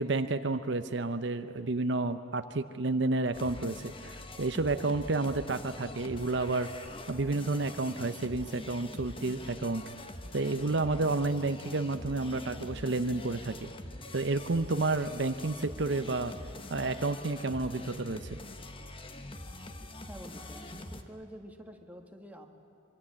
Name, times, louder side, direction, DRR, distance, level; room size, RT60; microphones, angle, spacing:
voice 1, 0.0-6.7 7.1-9.8 10.3-13.7 14.1-16.3 16.7-18.4, right 3 dB, 60° right, 9 dB, 0.7 m, -30 dB
sound 1, 3.3-21.0, left 1 dB, 25° left, 1.3 m, -44 dB
voice 2, 20.1-22.5, equal, 5° right, 3 dB, 1.8 m, -48 dB
25.5 x 23.5 x 8.7 m, 2.4 s
head